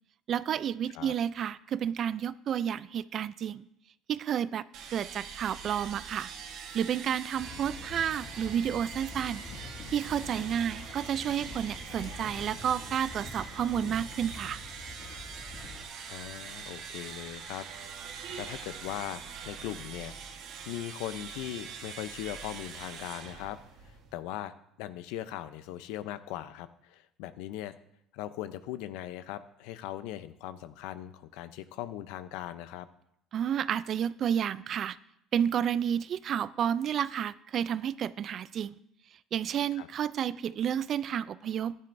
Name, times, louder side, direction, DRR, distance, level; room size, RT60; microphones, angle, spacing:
voice 1, 0.3-3.7 4.1-4.6 4.9-6.3 6.7-9.5 9.9-14.6 33.3-35.0 35.3-38.8 39.3-41.8, right 9 dB, 45° right, 17 dB, 0.3 m, -31 dB
sound 1, 4.7-24.2, right 6 dB, 65° right, 1.3 m, -43 dB
sound 2, 7.3-15.9, left 3 dB, 50° left, 2.0 m, -46 dB
voice 2, 16.1-17.6 18.4-20.1 20.7-23.6 23.8-24.5 24.8-27.7 28.1-32.9 39.8-39.9, left 13 dB, 90° left, 13 dB, 0.6 m, -39 dB
14.5 x 11.0 x 2.6 m, 0.77 s
cardioid pair, 135°, 0 cm